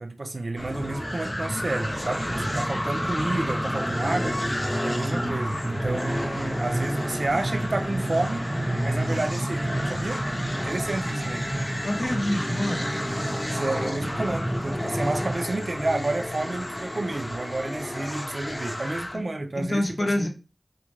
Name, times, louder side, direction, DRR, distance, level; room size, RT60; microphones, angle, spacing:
voice 1, 0.0-4.4 4.8-8.4 8.8-10.2 10.5-11.5 13.5-20.3, right 2 dB, 85° right, 0.4 m, -30 dB
sound 1, 0.6-19.2, left 1 dB, 35° left, 0.6 m, -32 dB
sound 2, 0.7-15.4, right 1 dB, 30° right, 0.5 m, -31 dB
voice 2, 11.8-13.0 19.1-19.2 19.6-20.3, left 1 dB, 85° left, 0.6 m, -27 dB
3.7 x 2.1 x 3.1 m
wide cardioid pair, 55°, 0 cm